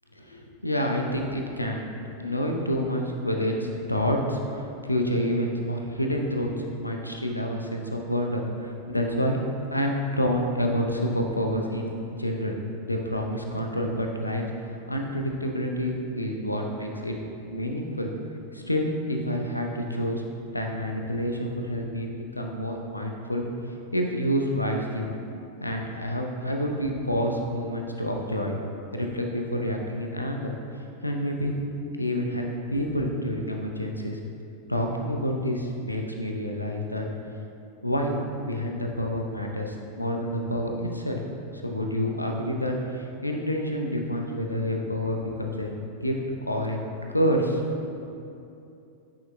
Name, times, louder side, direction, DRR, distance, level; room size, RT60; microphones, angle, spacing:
voice 1, 0.2-1.9 2.2-12.6 12.8-14.4 14.9-17.2 17.5-18.1 18.5-20.2 20.5-23.4 23.9-25.1 25.6-28.6 28.9-31.6 32.0-34.2 34.7-37.1 37.8-41.2 41.6-45.8 46.0-46.1 46.5-46.8 47.1-47.6, equal, 85° left, 2 dB, 0.6 m, -28 dB
8.6 x 6.3 x 2.2 m, 2.7 s
figure-of-eight pair, 90°, 0 cm